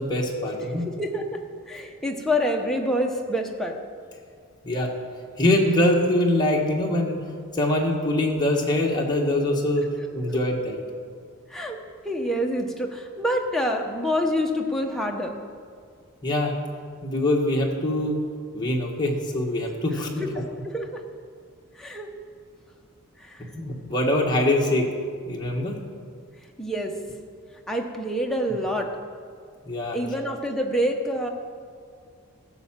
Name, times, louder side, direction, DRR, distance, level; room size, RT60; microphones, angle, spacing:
voice 1, 0.0-0.8 4.6-4.9 5.4-7.2 7.5-9.9 10.1-10.8 16.2-16.5 17.0-18.2 18.5-20.3 23.5-24.9 25.2-25.8 29.6-30.0, left 1 dB, 20° left, -2 dB, 1.4 m, -23 dB
voice 2, 1.0-1.4 1.7-3.8 11.5-11.8 12.0-15.3 20.2-20.3 20.6-21.0 21.8-22.1 23.2-23.4 26.6-27.2 27.7-28.9 29.9-31.3, equal, ahead, 0 dB, 0.9 m, -27 dB
15.5 x 5.8 x 7.4 m, 2.2 s
head